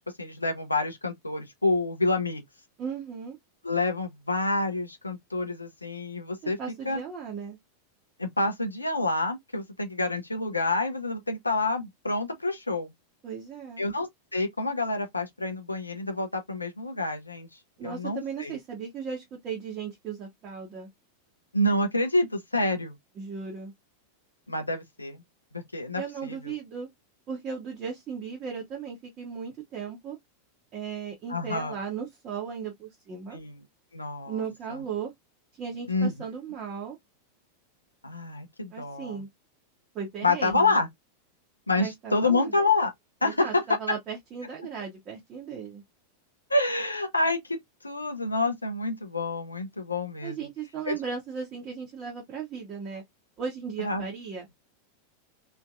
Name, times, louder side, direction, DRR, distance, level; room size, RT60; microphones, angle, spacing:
voice 1, 0.2-2.4 3.6-6.6 6.9-7.0 8.2-12.9 13.8-17.5 17.8-18.6 21.5-23.0 24.5-25.2 25.5-26.5 31.3-31.8 33.3-33.6 33.9-34.4 35.9-36.1 38.0-39.2 40.2-40.9 41.7-42.9 43.2-43.6 46.5-47.6 47.8-50.4 50.9-51.0 53.8-54.1, left 2 dB, 80° left, 0.7 m, -28 dB
voice 2, 2.8-3.4 6.4-7.6 13.2-13.9 17.8-20.9 23.2-23.7 26.0-26.9 27.3-30.2 30.7-33.4 34.3-35.1 35.5-37.0 38.7-39.3 39.9-40.8 41.8-42.5 43.2-45.8 50.2-53.0 53.4-54.5, right 6 dB, 30° right, 1.2 m, -36 dB
3.1 x 2.8 x 2.4 m
figure-of-eight pair, 90°, 0 cm